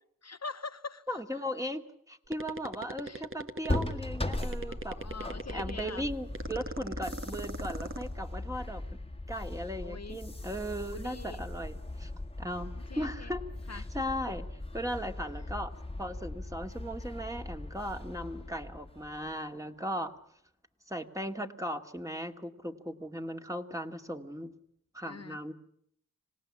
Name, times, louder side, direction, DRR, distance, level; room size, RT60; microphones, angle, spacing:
voice 1, 0.2-1.4 3.0-3.2 4.6-6.1 9.8-10.2 10.9-11.5 12.9-13.4 13.7-14.0 25.0-25.4, left 4 dB, 50° left, 9 dB, 1.0 m, -44 dB
voice 2, 1.1-1.8 2.1-5.0 5.5-9.0 9.3-12.1 12.4-14.5 14.7-20.1 20.9-24.5 24.9-25.5, equal, 10° right, 5 dB, 2.3 m, -37 dB
sound 1, 2.3-4.0 4.3-6.0 6.3-8.1, right 2 dB, 40° right, 1.9 m, -39 dB
sound 2, 3.7-19.4, left 2 dB, 15° left, 1.8 m, -39 dB
26.0 x 18.0 x 10.0 m, 0.72 s
cardioid pair, 50°, 34 cm